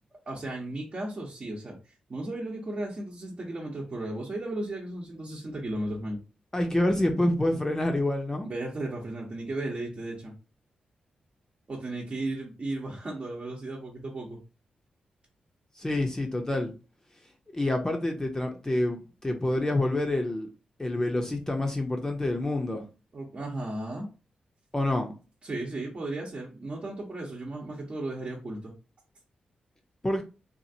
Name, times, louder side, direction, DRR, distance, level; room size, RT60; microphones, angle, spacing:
voice 1, 0.3-1.8 2.1-6.2 8.4-10.3 11.7-14.4 23.1-24.1 25.4-28.7, right 2 dB, 45° right, 0.8 m, -35 dB
voice 2, 6.5-8.5 15.8-16.7 17.5-20.5 20.8-22.8 24.7-25.1 30.0-30.2, left 1 dB, 20° left, 0.6 m, -27 dB
2.8 x 2.5 x 2.7 m
supercardioid pair, 50°, 3 cm